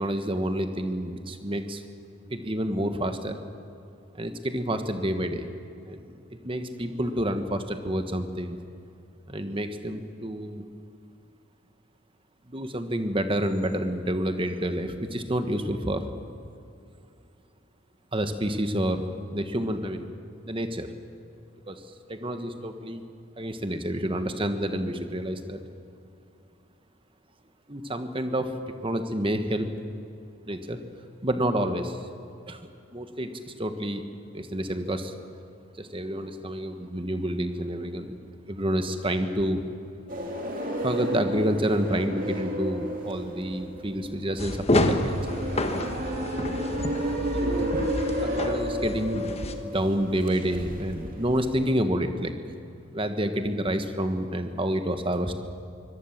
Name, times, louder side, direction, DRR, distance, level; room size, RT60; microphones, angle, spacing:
voice 1, 0.0-1.8 2.3-3.4 4.1-5.5 5.9-6.1 6.4-8.6 9.3-10.6 12.5-16.0 18.1-20.1 20.4-20.9 21.7-21.8 22.1-23.0 23.4-25.6 27.7-29.7 30.5-30.8 31.2-32.0 32.5-32.6 32.9-34.0 34.3-35.1 35.8-38.2 38.5-39.6 40.8-45.2 47.4-47.7 48.2-49.2 49.6-52.3 52.9-55.3, right 1 dB, 25° right, 8 dB, 1.4 m, -28 dB
sound 1, 40.1-51.7, equal, 40° right, 3.0 m, -32 dB
sound 2, 44.4-49.5, left 1 dB, 30° left, 1.3 m, -29 dB
24.0 x 18.0 x 7.4 m, 2.6 s
head